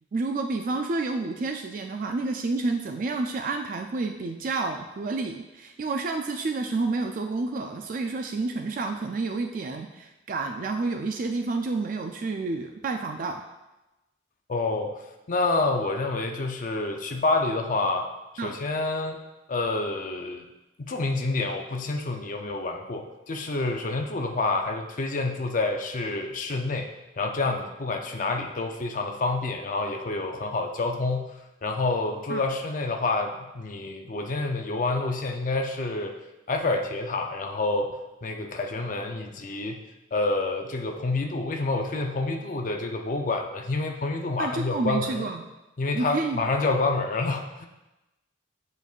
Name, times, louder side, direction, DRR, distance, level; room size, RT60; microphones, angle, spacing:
voice 1, 0.1-13.4 18.4-18.5 32.3-32.4 44.4-45.4 45.9-46.4, right 3 dB, 45° right, 5 dB, 0.3 m, -29 dB
voice 2, 14.5-15.0 15.3-18.0 18.4-19.2 19.5-20.4 20.8-26.9 27.2-31.3 31.6-36.1 36.5-39.8 40.1-45.3 45.8-47.7, left 3 dB, 45° left, 3 dB, 0.5 m, -28 dB
8.3 x 5.2 x 2.4 m, 1.0 s
head